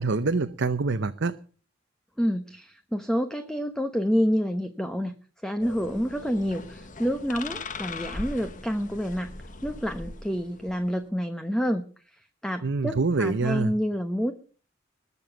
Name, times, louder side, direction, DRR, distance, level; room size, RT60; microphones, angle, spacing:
voice 1, 0.0-1.4 12.6-13.7, right 3 dB, 65° right, 9 dB, 0.8 m, -26 dB
voice 2, 2.2-5.1 5.4-9.3 9.6-14.3, equal, 5° left, 8 dB, 1.0 m, -28 dB
sound 1, 5.6-11.0, left 3 dB, 40° left, 1.3 m, -40 dB
21.0 x 7.1 x 6.9 m, 0.40 s
head